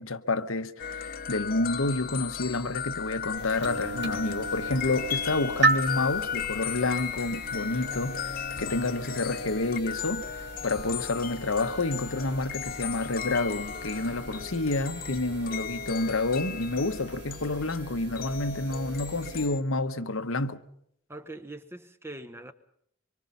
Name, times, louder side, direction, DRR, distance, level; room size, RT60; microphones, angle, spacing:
voice 1, 0.0-20.6, left 2 dB, 80° left, 1.1 m, -29 dB
sound 1, 0.8-19.6, left 7 dB, 45° left, 1.0 m, -36 dB
sound 2, 3.4-19.5, right 3 dB, 55° right, 2.0 m, -36 dB
voice 2, 21.1-22.5, right 2 dB, 10° right, 1.0 m, -42 dB
25.0 x 24.0 x 5.5 m
head